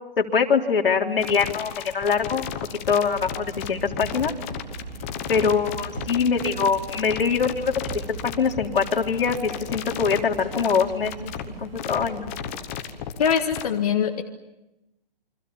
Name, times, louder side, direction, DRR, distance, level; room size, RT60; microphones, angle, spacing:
voice 1, 0.2-2.5 2.9-4.3 5.3-8.0 8.4-11.3 11.6-12.3, left 5 dB, 70° left, 2 dB, 3.6 m, -23 dB
sound 1, 1.2-13.6, left 10 dB, 15° left, 1.1 m, -34 dB
sound 2, 3.1-12.6, right 5 dB, 75° right, 3.5 m, -40 dB
sound 3, 4.0-4.4 6.0-6.4 7.9-8.2, right 4 dB, 55° right, 7.0 m, -37 dB
voice 2, 13.2-14.2, left 7 dB, 40° left, 3 dB, 1.7 m, -22 dB
29.0 x 25.0 x 7.2 m, 0.95 s
hypercardioid pair, 170°, 29 cm